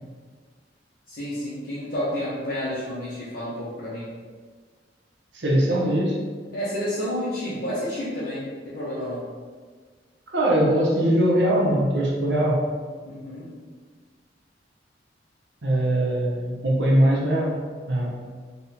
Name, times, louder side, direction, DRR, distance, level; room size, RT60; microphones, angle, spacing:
voice 1, 1.1-4.1 6.5-9.2 13.0-13.5, equal, 55° left, -11 dB, 1.1 m, -30 dB
voice 2, 5.3-6.2 10.3-12.6 15.6-17.5 17.9-18.2, right 1 dB, 75° right, -4 dB, 0.9 m, -21 dB
4.0 x 2.4 x 4.2 m, 1.5 s
head